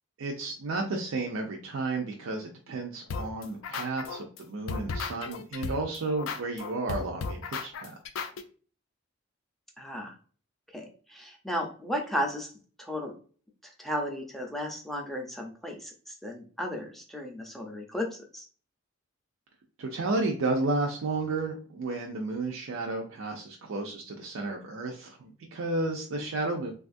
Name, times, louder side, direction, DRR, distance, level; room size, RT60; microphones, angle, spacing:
voice 1, 0.2-7.9 19.8-26.7, right 3 dB, 80° right, 1 dB, 0.4 m, -32 dB
sound 1, 3.1-4.4 4.7-8.4, left 4 dB, 75° left, 0.4 m, -35 dB
voice 2, 9.8-10.1 10.7-12.5 12.8-13.1 13.6-18.1 18.3-18.4 26.2-26.3, equal, ahead, 0 dB, 0.4 m, -34 dB
3.3 x 2.3 x 2.5 m, 0.41 s
head